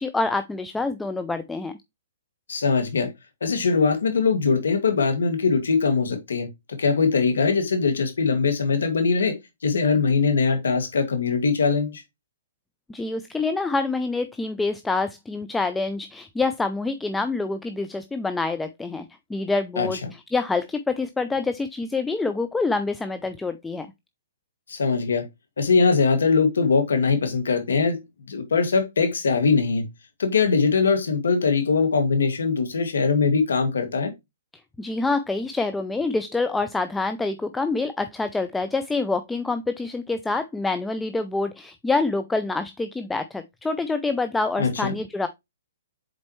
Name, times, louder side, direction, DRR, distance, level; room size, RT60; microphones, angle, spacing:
voice 1, 0.0-1.7 12.9-20.0 20.3-23.9 34.8-45.3, left 3 dB, 5° left, 0.5 m, -26 dB
voice 2, 2.5-3.1 3.4-6.5 6.8-9.3 9.6-12.0 19.8-20.1 24.7-25.3 25.6-28.0 28.3-29.8 30.2-34.1 44.6-45.0, left 4 dB, 80° left, 2.1 m, -21 dB
7.5 x 4.2 x 3.1 m
hypercardioid pair, 140°, 0 cm